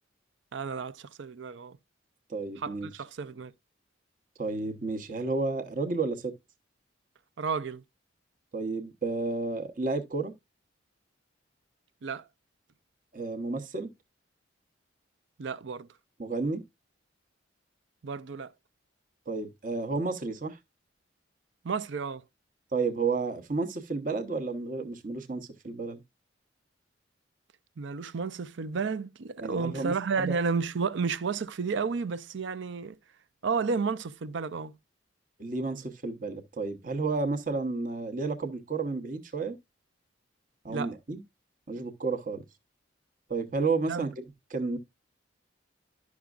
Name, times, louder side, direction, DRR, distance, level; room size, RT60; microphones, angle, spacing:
voice 1, 0.5-1.8 2.6-3.5 7.4-7.8 12.0-12.3 15.4-15.9 18.0-18.5 21.6-22.2 27.8-33.0 33.4-34.7 40.7-40.9 43.9-44.1, right 5 dB, 70° right, 0.5 m, -32 dB
voice 2, 2.3-2.9 4.4-6.3 8.5-10.3 13.1-13.9 16.2-16.6 19.3-20.6 22.7-26.0 29.4-30.4 35.4-39.6 40.6-41.2 41.7-42.4 43.3-44.1 44.5-44.8, right 3 dB, 40° right, 0.8 m, -31 dB
11.5 x 6.0 x 2.4 m
head